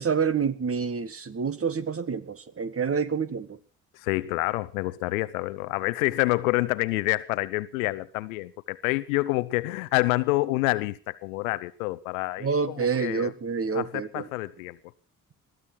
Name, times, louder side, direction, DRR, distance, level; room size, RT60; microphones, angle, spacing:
voice 1, 0.0-3.6 12.4-14.3, right 6 dB, 30° right, 1.6 m, -28 dB
voice 2, 3.9-13.3 13.7-14.8, left 20 dB, 70° left, 0.9 m, -27 dB
21.0 x 15.0 x 4.6 m
figure-of-eight pair, 45°, 42 cm